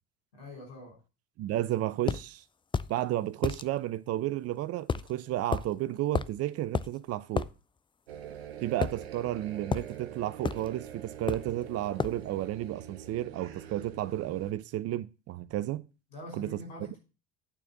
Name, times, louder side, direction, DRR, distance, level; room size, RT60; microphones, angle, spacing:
voice 1, 0.3-1.0 16.1-17.0, left 1 dB, 85° left, 6.0 m, -44 dB
voice 2, 1.4-2.4 2.9-7.5 8.6-15.8 16.3-16.6, right 14 dB, 55° right, 0.6 m, -32 dB
sound 1, 2.1-2.2 2.7-2.9 3.4-3.6 4.9-5.1 5.5-5.7 6.1-6.4 6.7-6.9 7.4-7.5 8.8-9.4 9.7-9.9 10.4-10.7 11.3-11.5 12.0-12.2, left 5 dB, 15° left, 0.4 m, -31 dB
sound 2, 8.1-14.5, right 9 dB, 90° right, 1.1 m, -45 dB
9.0 x 4.4 x 5.9 m
hypercardioid pair, 70°, 29 cm